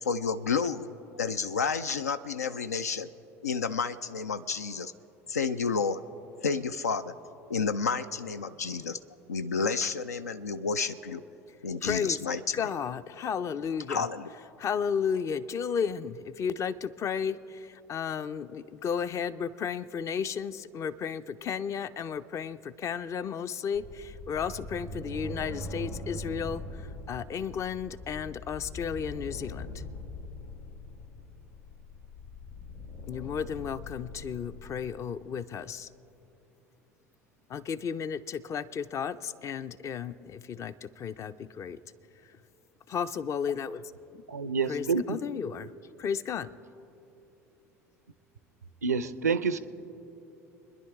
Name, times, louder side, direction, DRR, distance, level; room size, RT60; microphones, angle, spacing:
voice 1, 0.0-3.1 3.4-4.9 5.3-6.0 6.4-7.1 7.5-9.0 9.3-11.2 11.6-12.7 13.9-14.2, left 5 dB, 85° left, 12 dB, 0.3 m, -30 dB
voice 2, 11.8-12.2 12.5-14.1 14.6-29.7 33.1-35.9 37.5-41.8 42.9-43.9 44.7-45.7 46.0-46.5, left 7 dB, 35° left, 14 dB, 0.5 m, -33 dB
sound 1, 23.7-35.0, left 1 dB, 70° left, 2.7 m, -42 dB
voice 3, 44.3-45.2 48.8-49.6, right 5 dB, 85° right, 14 dB, 0.4 m, -28 dB
25.5 x 10.5 x 3.5 m, 3.0 s
figure-of-eight pair, 70°, 8 cm